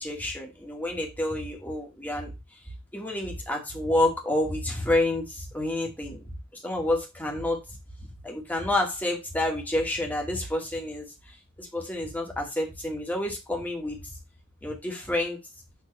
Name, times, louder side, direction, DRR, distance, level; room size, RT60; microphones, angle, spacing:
voice 1, 0.0-2.3 2.9-6.2 6.6-7.6 8.2-14.0 14.6-15.4, left 1 dB, 10° left, 0 dB, 2.4 m, -29 dB
7.2 x 4.5 x 5.5 m, 0.24 s
head